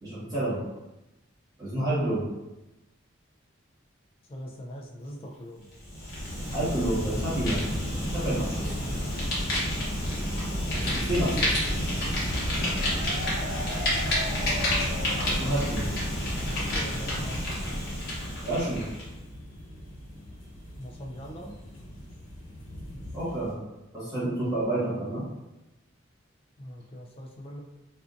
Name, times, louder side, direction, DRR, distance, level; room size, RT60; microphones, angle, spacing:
voice 1, 0.0-0.6 1.6-2.2 6.5-7.6 8.1-8.7 10.7-11.6 15.2-15.9 18.4-18.8 23.1-23.5 23.9-25.2, right 1 dB, 20° right, -10 dB, 1.2 m, -29 dB
voice 2, 4.3-5.7 8.3-8.5 16.4-17.6 20.8-21.5 26.6-27.6, equal, 30° left, 0 dB, 0.3 m, -41 dB
Fire, 5.7-19.1, equal, 50° left, 0.9 m, -29 dB
sound 1, 6.9-23.5, equal, 80° left, 1.1 m, -41 dB
sound 2, 12.4-16.0 16.3-16.4 16.7-16.8, left 1 dB, 40° right, 0.6 m, -38 dB
2.5 x 2.4 x 2.4 m, 0.97 s
head